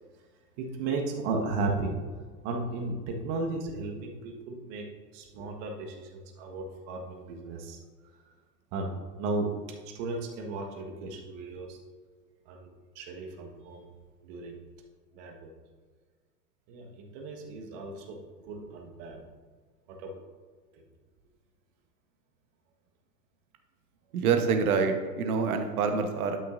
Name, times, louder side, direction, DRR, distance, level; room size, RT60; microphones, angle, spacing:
voice 1, 0.6-2.0 2.4-4.9 5.1-7.8 8.7-9.5 9.8-11.8 12.5-12.7 12.9-13.9 14.2-14.6 15.1-15.5 16.7-19.2 19.9-20.2, right 3 dB, 45° right, 2 dB, 1.6 m, -35 dB
voice 2, 24.1-26.4, right 5 dB, 60° right, 6 dB, 1.3 m, -26 dB
12.0 x 5.9 x 2.6 m, 1.5 s
figure-of-eight pair, 95°, 49 cm